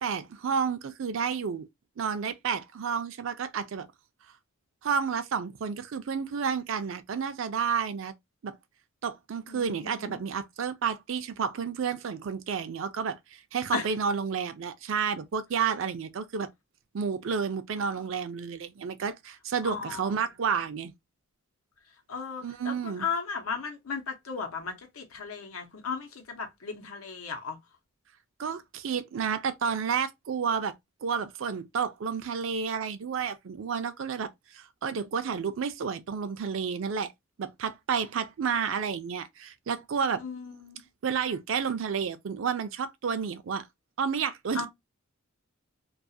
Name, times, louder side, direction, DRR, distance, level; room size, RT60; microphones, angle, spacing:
voice 1, 0.0-1.7 2.0-3.9 4.8-8.1 8.4-8.6 9.0-16.5 16.9-20.9 22.4-23.1 28.4-30.7 31.0-37.1 37.4-40.2 41.0-43.7 44.0-44.7, right 6 dB, 65° right, 0.4 m, -31 dB
voice 2, 9.5-10.2 13.7-13.8 19.6-20.1 22.1-27.6 40.2-40.8 44.5-44.7, left 5 dB, 85° left, 0.8 m, -35 dB
2.4 x 2.3 x 2.6 m
head